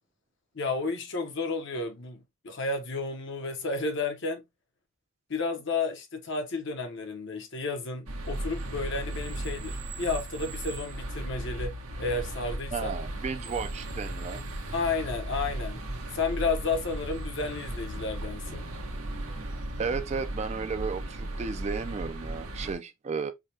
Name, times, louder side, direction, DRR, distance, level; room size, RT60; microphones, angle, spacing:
voice 1, 0.5-4.4 5.3-12.9 14.7-15.9 16.1-18.7, left 3 dB, 60° left, 0.8 m, -32 dB
sound 1, 8.1-22.7, right 1 dB, 90° right, 0.9 m, -36 dB
voice 2, 12.7-14.4 19.8-23.3, right 5 dB, 30° right, 0.3 m, -33 dB
4.9 x 2.2 x 2.7 m
head